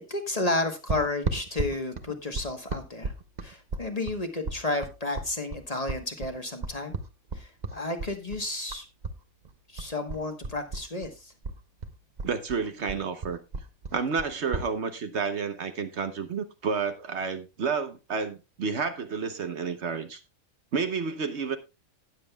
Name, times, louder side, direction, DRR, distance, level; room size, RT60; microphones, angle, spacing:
voice 1, 0.1-3.1 3.4-7.0 7.3-8.8 9.7-11.3, left 2 dB, 30° left, 1.2 m, -32 dB
sound 1, 0.9-9.2 9.4-11.1 11.4-14.7, right 3 dB, 35° right, 0.9 m, -35 dB
voice 2, 12.2-13.4 13.9-20.2 20.7-21.6, right 5 dB, 60° right, 1.1 m, -30 dB
19.0 x 7.4 x 2.3 m
omnidirectional pair, 1.4 m